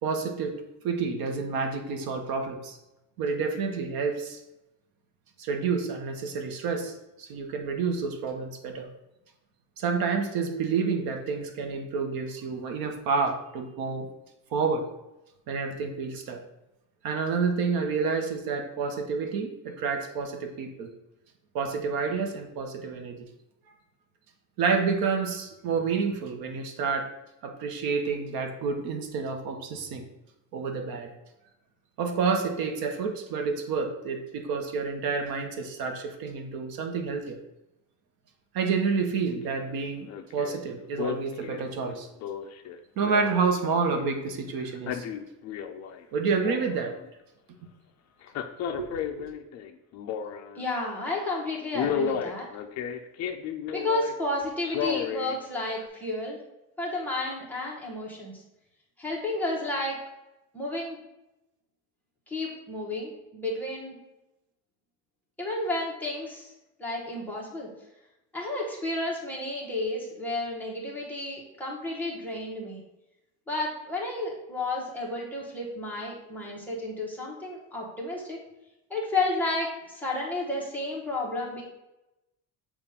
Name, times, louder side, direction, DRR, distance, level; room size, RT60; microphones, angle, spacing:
voice 1, 0.0-0.6 0.8-2.8 3.2-4.4 5.4-8.9 9.8-14.1 14.5-14.9 15.5-16.4 17.0-20.9 21.5-23.3 24.6-27.1 27.4-30.1 30.5-31.1 32.0-37.4 38.5-42.1 43.0-45.0 46.1-46.9 48.8-49.1, right 5 dB, 65° right, 4 dB, 0.9 m, -29 dB
Male speech man speaking, 39.5-39.8 40.1-40.6 41.0-44.2 44.6-46.0 46.3-47.1 48.2-50.6 51.1-51.3 51.7-54.1 54.6-55.4 55.8-55.9, left 8 dB, 45° left, 0.5 m, -33 dB
voice 2, 50.5-52.5 53.7-56.4 56.8-58.4 59.0-60.0 60.5-61.0 62.3-64.0 65.4-66.5 66.8-67.7 68.3-72.8 73.5-78.4 78.9-81.6, left 2 dB, 5° left, -5 dB, 1.0 m, -31 dB
7.0 x 2.5 x 5.6 m, 0.93 s
cardioid pair, 180°, 38 cm